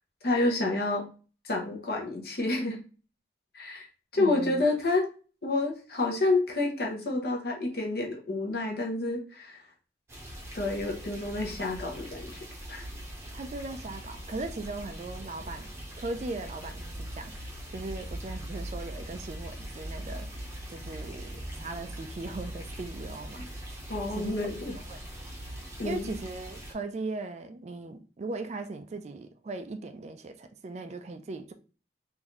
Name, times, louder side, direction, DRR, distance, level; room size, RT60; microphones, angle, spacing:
voice 1, 0.2-1.1 1.4-2.8 3.5-3.8 4.1-5.1 5.4-9.6 10.5-12.4 12.7-12.9 23.9-24.8 25.8-26.1, left 2 dB, 55° left, 0.9 m, -29 dB
voice 2, 4.1-4.6 13.3-15.7 16.0-20.3 20.7-23.5 24.1-24.4 24.7-25.0 25.8-31.5, right 3 dB, 35° right, 0.3 m, -38 dB
sound 1, 10.1-26.7, right 1 dB, 15° right, 0.7 m, -41 dB
3.9 x 2.6 x 3.0 m
head